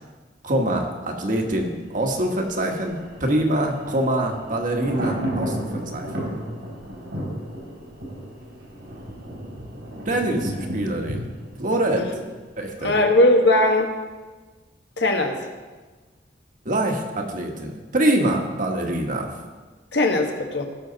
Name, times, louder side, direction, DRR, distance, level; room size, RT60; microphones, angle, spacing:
voice 1, 0.4-6.1 10.0-11.2 11.6-12.0 12.6-13.0 16.6-19.3, right 1 dB, 50° right, 2 dB, 1.5 m, -24 dB
Thunder, 1.9-12.8 13.1-13.2, equal, 80° right, 3.4 m, -33 dB
voice 2, 12.8-13.9 15.0-15.4 19.9-20.6, left 1 dB, 70° left, 3 dB, 1.4 m, -19 dB
17.0 x 6.4 x 4.0 m, 1.3 s
head